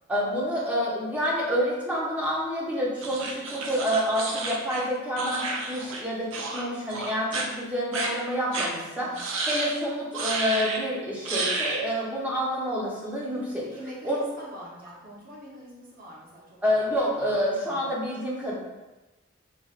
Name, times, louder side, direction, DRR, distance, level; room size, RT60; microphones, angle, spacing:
voice 1, 0.1-13.7 14.0-14.2 16.6-18.6, equal, 5° right, -5 dB, 0.6 m, -28 dB
sound 1, 3.0-6.0 6.3-6.6 6.9-7.5 7.9-8.1 8.5-8.7 9.2-9.7 10.1-10.8 11.3-11.8, right 3 dB, 65° right, 0.5 m, -31 dB
voice 2, 8.9-9.2 13.4-18.0, equal, 45° right, -5 dB, 0.8 m, -45 dB
3.9 x 2.1 x 2.4 m, 1.1 s
head